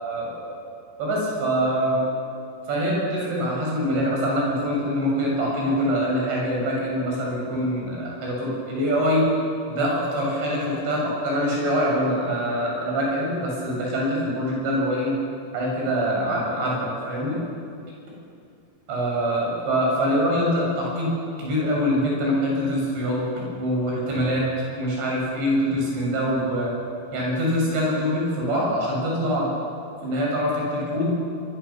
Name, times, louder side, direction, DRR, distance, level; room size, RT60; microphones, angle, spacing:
voice 1, 0.0-0.6 1.0-2.0 2.7-9.3 9.7-15.2 15.5-17.4 18.9-26.7 27.1-29.5 30.0-31.1, equal, 65° right, -3 dB, 9.1 m, -24 dB
24.5 x 23.0 x 7.3 m, 2.5 s
omnidirectional pair, 5.7 m